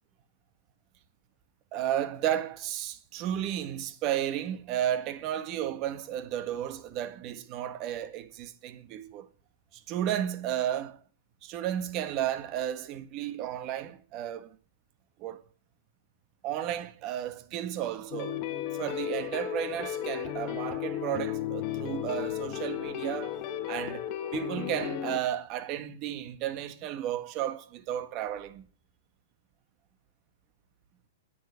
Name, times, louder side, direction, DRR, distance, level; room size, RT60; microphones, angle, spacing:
voice 1, 1.7-9.3 9.7-11.0 11.4-14.6 15.2-15.4 16.4-18.4 18.7-23.4 23.7-24.0 24.3-28.7, right 11 dB, 35° right, 1.6 m, -33 dB
sound 1, 18.1-25.2, left 11 dB, 40° left, 1.7 m, -34 dB
10.5 x 9.6 x 8.4 m
hypercardioid pair, 140°, 0 cm